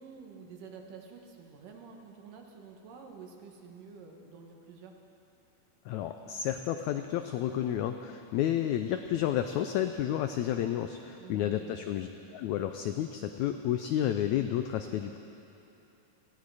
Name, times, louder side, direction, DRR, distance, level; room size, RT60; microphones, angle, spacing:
voice 1, 0.0-5.0 11.2-11.8, right 5 dB, 75° right, 2 dB, 3.0 m, -49 dB
voice 2, 5.8-15.2, left 11 dB, 90° left, 7 dB, 1.6 m, -31 dB
19.0 x 15.5 x 4.8 m, 2.8 s
omnidirectional pair, 3.9 m